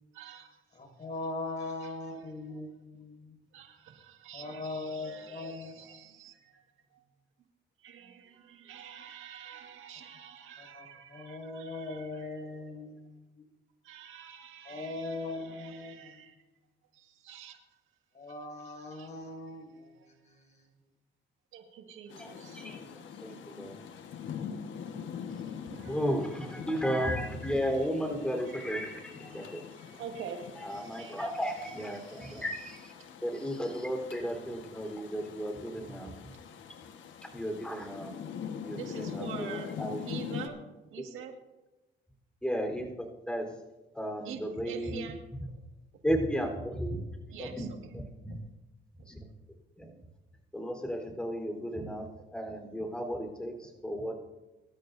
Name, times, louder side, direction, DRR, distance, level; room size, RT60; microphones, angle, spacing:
voice 1, 0.1-1.0 1.6-2.3 3.5-6.6 6.9-7.0 7.8-12.9 13.8-16.4 16.9-17.8 18.2-20.4 21.5-22.6 23.9-24.5 25.0-26.3 27.5-28.0 28.2-32.4 33.0-33.1 38.7-39.7 40.1-40.6 40.9-41.3 44.2-45.2 45.5-45.6 47.3-47.9 49.0-49.3 49.9-50.0, right 8 dB, 90° right, 1.9 m, -48 dB
voice 2, 0.8-3.4 4.3-5.7 10.6-13.4 14.6-16.1 18.1-20.7, left 2 dB, 35° left, 5.7 m, -40 dB
Rain, 22.1-40.5, left 7 dB, 75° left, 1.4 m, -43 dB
voice 3, 22.2-23.9 25.9-29.6 30.6-32.9 33.2-36.1 37.3-38.1 38.6-40.0 42.4-42.9 43.3-43.6 43.9-45.1 46.0-47.0 47.4-47.7 48.2-48.4 49.1-49.2 49.8-49.9 50.5-52.1 52.3-54.1, equal, 5° left, 3.9 m, -34 dB
24.5 x 13.0 x 2.7 m
cardioid pair, 90°, 20 cm